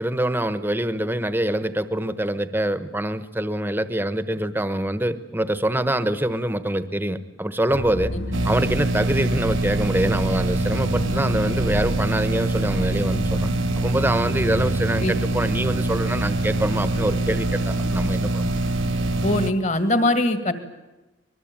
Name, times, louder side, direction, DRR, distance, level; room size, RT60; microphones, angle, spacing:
voice 1, 0.0-8.1 8.4-13.5 13.8-18.6, right 1 dB, 10° right, 12 dB, 1.2 m, -25 dB
sound 1, 7.7-19.3, equal, 60° left, 3.6 m, -31 dB
sound 2, 8.3-19.5, right 2 dB, 85° right, 1.4 m, -24 dB
voice 2, 19.2-20.5, left 1 dB, 35° left, 10 dB, 2.2 m, -21 dB
25.5 x 20.5 x 8.9 m, 1.1 s
head